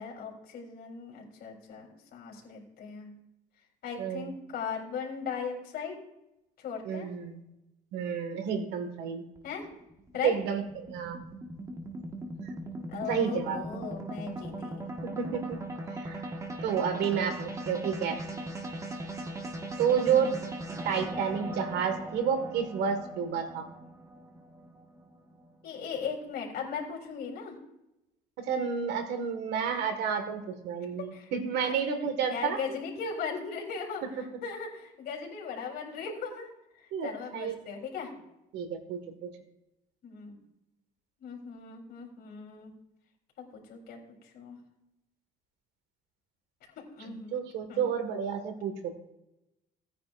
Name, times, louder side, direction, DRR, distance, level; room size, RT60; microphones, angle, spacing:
voice 1, 0.0-3.1 3.8-5.9 6.6-7.1 9.4-9.7 10.1-10.3 12.9-14.9 20.0-20.4 25.6-27.6 31.1-31.3 31.6-31.8 32.3-36.5 36.8-38.1 40.0-40.4 41.2-42.7 43.4-44.0 44.3-44.6 46.8-47.4 47.7-47.9, left 6 dB, 70° left, -1 dB, 3.6 m, -38 dB
voice 2, 4.0-4.3 6.8-7.4 7.9-9.2 10.2-11.3 13.1-13.6 15.1-15.6 16.0-16.2 16.6-18.2 19.8-20.3 20.9-23.6 28.4-32.6 34.0-34.1 36.9-37.6 38.5-39.3 47.1-48.9, right 7 dB, 80° right, 7 dB, 1.8 m, -30 dB
sound 1, 9.4-25.7, right 1 dB, 20° right, 1.6 m, -39 dB
17.5 x 9.4 x 2.6 m, 0.90 s
cardioid pair, 110°, 17 cm